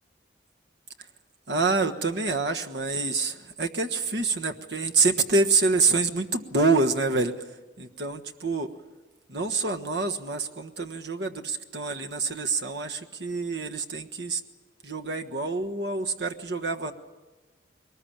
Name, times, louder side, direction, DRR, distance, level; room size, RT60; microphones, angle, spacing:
voice 1, 1.5-7.5 7.8-8.7 9.3-14.4 14.8-16.9, right 3 dB, 65° right, 4 dB, 1.4 m, -26 dB
22.0 x 20.0 x 8.8 m, 1.2 s
head